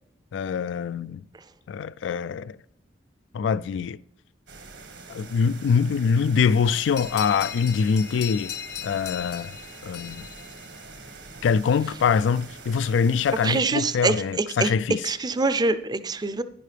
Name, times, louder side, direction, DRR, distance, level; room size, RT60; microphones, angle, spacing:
voice 1, 0.3-1.2 1.7-2.6 3.3-4.0 5.1-8.5 8.8-9.6 9.8-10.3 11.4-15.0, left 6 dB, 85° left, 0.3 m, -24 dB
sound 1, 4.5-13.6, right 4 dB, 80° right, 1.6 m, -44 dB
sound 2, 7.0-11.2, left 10 dB, 65° left, 0.7 m, -38 dB
voice 2, 13.4-14.7 15.0-16.4, right 3 dB, 25° right, 0.5 m, -25 dB
11.0 x 10.0 x 3.4 m
head